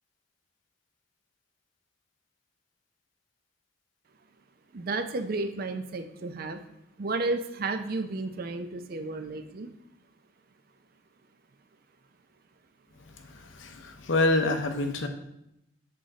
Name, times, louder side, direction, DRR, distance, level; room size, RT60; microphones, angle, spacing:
voice 1, 4.7-6.6 7.0-9.7, right 3 dB, 50° right, 9 dB, 0.5 m, -32 dB
voice 2, 13.4-15.1, left 2 dB, 70° left, 6 dB, 0.7 m, -26 dB
6.8 x 3.8 x 3.9 m, 0.81 s
head